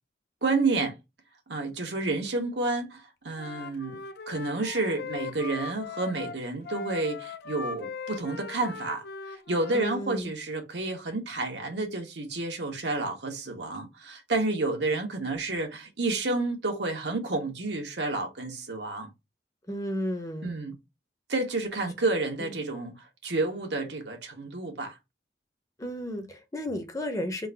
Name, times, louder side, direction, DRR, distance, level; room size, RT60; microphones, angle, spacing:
voice 1, 0.4-1.0 1.5-19.1 20.4-20.8 21.3-25.0, right 2 dB, 80° right, 1.2 m, -30 dB
Wind instrument woodwind instrument, 3.3-10.0, left 4 dB, 65° left, 0.5 m, -39 dB
voice 2, 9.7-10.3 19.7-20.6 22.4-22.6 25.8-27.5, equal, 20° left, 0.7 m, -33 dB
3.7 x 2.6 x 4.6 m
head